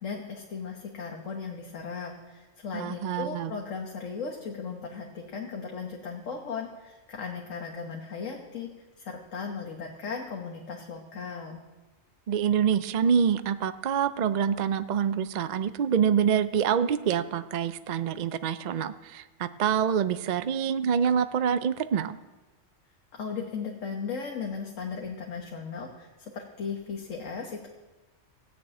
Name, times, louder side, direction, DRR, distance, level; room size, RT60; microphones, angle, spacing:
voice 1, 0.0-8.7 9.0-11.6 23.1-27.7, left 5 dB, 80° left, 1 dB, 1.6 m, -37 dB
voice 2, 2.7-3.5 12.3-22.2, right 8 dB, 55° right, 13 dB, 0.4 m, -26 dB
16.0 x 6.9 x 8.7 m, 1.2 s
omnidirectional pair, 1.3 m